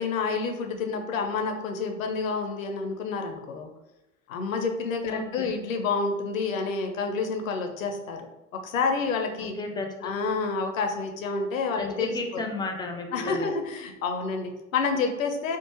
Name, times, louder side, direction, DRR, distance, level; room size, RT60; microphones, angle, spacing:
voice 1, 0.0-3.7 4.3-8.3 8.5-9.5 10.0-12.4 13.1-15.6, left 4 dB, 75° left, 5 dB, 0.6 m, -29 dB
voice 2, 5.1-5.5 9.6-10.1 11.8-13.5, left 2 dB, 10° left, 3 dB, 0.4 m, -33 dB
3.7 x 2.4 x 2.8 m, 0.97 s
figure-of-eight pair, 65°, 40 cm